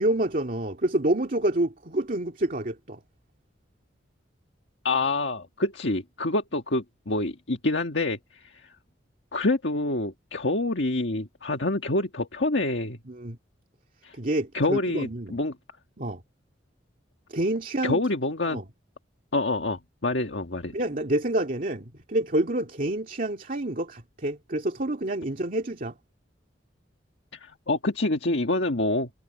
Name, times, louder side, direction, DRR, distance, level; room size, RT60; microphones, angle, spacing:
voice 1, 0.0-3.0 13.1-13.4 14.2-15.4 16.0-16.2 17.3-18.0 18.5-18.7 20.7-25.9, right 1 dB, 50° right, 2.3 m, -28 dB
voice 2, 4.8-8.5 9.3-13.0 14.0-14.1 14.5-15.5 17.8-18.6 19.3-20.7 27.4-29.1, left 2 dB, 70° left, 1.8 m, -27 dB
head